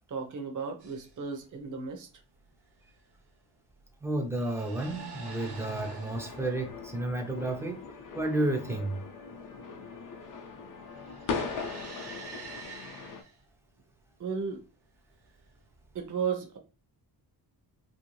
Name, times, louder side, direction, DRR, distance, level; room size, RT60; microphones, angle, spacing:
voice 1, 0.1-2.1 14.2-14.6 15.9-16.6, right 6 dB, 45° right, 0.7 m, -34 dB
sound 1, 0.8-1.2 2.8-3.1 4.2-6.7 10.8-13.4 15.3-16.0, right 5 dB, 70° right, 1.0 m, -46 dB
voice 2, 4.0-7.8 8.1-9.0, right 1 dB, 5° right, 0.5 m, -31 dB
sound 2, 4.8-13.2, left 5 dB, 50° left, 0.6 m, -40 dB
2.9 x 2.6 x 3.1 m
wide cardioid pair, 150°, 41 cm